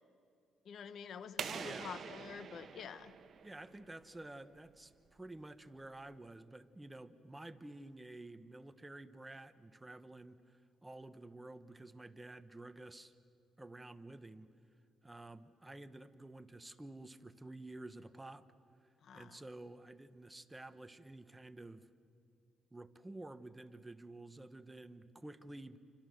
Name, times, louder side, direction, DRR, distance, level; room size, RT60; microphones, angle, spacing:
voice 1, 0.6-3.1 19.0-19.4, left 7 dB, 65° left, 13 dB, 1.1 m, -48 dB
sound 1, 1.4-4.0, right 6 dB, 55° right, 1.4 m, -45 dB
voice 2, 1.5-1.9 3.4-13.1 13.6-14.5 15.0-18.5 18.8-21.9 22.7-25.8, right 2 dB, 15° right, 12 dB, 1.1 m, -51 dB
30.0 x 25.5 x 6.6 m, 2.3 s
cardioid pair, 90°, 0 cm